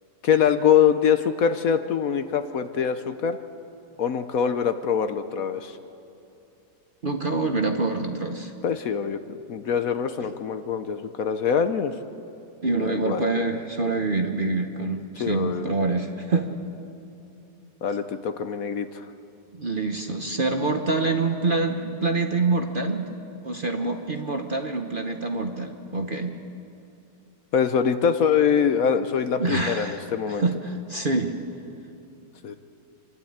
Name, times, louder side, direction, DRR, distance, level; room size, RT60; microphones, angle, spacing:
voice 1, 0.2-3.4 4.0-5.8 8.6-11.9 12.7-13.2 15.2-15.7 17.8-19.1 27.5-30.4 32.4-32.6, left 7 dB, 60° left, 10 dB, 1.1 m, -24 dB
voice 2, 7.0-8.5 10.2-10.3 12.6-16.6 19.5-23.1 23.4-26.4 29.4-31.3, right 3 dB, 40° right, 4 dB, 0.9 m, -26 dB
27.5 x 12.0 x 8.8 m, 2.8 s
omnidirectional pair, 1.9 m